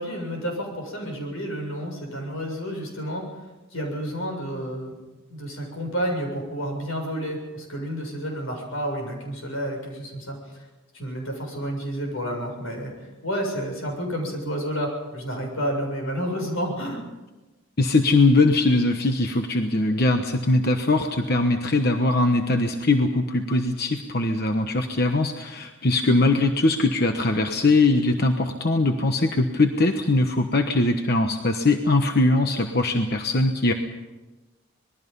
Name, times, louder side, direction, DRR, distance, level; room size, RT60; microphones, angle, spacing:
voice 1, 0.0-3.2 3.7-4.9 5.3-10.6 10.9-17.0, equal, 85° left, 2 dB, 7.3 m, -30 dB
voice 2, 17.8-33.7, left 2 dB, 50° left, 5 dB, 1.2 m, -21 dB
26.5 x 20.5 x 5.5 m, 1.1 s
head